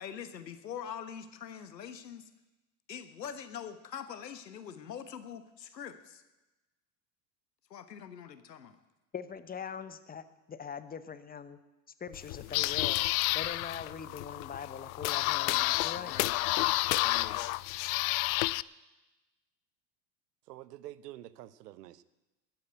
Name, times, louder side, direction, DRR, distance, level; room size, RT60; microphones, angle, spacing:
voice 1, 0.0-2.3 2.9-6.2 7.7-8.8 15.5-17.4, left 8 dB, 85° left, 11 dB, 1.3 m, -44 dB
voice 2, 9.1-11.6 12.0-13.0 13.3-16.1, left 6 dB, 20° left, 13 dB, 1.0 m, -42 dB
sound 1, 12.1-18.6, left 21 dB, 60° left, 0.5 m, -30 dB
voice 3, 20.5-22.0, right 14 dB, 75° right, 18 dB, 0.9 m, -47 dB
13.5 x 9.3 x 9.2 m, 1.1 s
hypercardioid pair, 85°, 48 cm